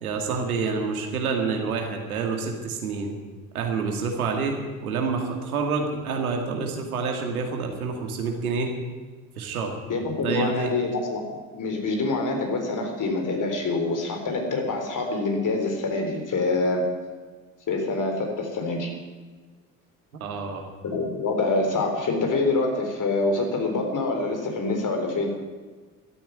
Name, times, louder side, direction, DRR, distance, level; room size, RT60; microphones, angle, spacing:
voice 1, 0.0-3.2 3.5-8.7 9.4-9.8 10.2-10.8 20.1-20.6, right 4 dB, 90° right, 3 dB, 2.3 m, -28 dB
voice 2, 9.9-11.2 11.5-16.9 17.7-18.9 20.8-25.3, left 3 dB, 45° left, 3 dB, 4.2 m, -26 dB
13.5 x 9.0 x 9.5 m, 1.4 s
hypercardioid pair, 65°, 42 cm